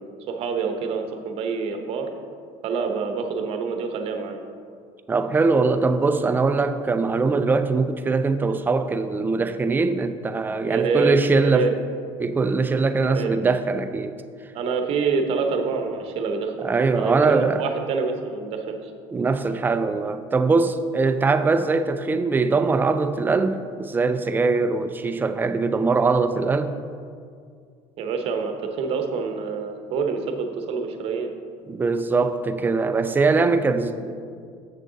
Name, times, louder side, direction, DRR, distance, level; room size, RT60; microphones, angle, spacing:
voice 1, 0.0-2.1 2.6-4.4 10.7-11.7 13.1-13.4 14.5-16.7 16.9-18.9 28.0-31.3, right 5 dB, 55° right, 5 dB, 0.9 m, -26 dB
voice 2, 5.1-11.7 12.2-14.2 16.6-17.6 19.1-26.7 31.7-34.1, right 4 dB, 15° right, 9 dB, 0.4 m, -22 dB
7.5 x 6.4 x 3.9 m, 2.2 s
cardioid pair, 125°, 12 cm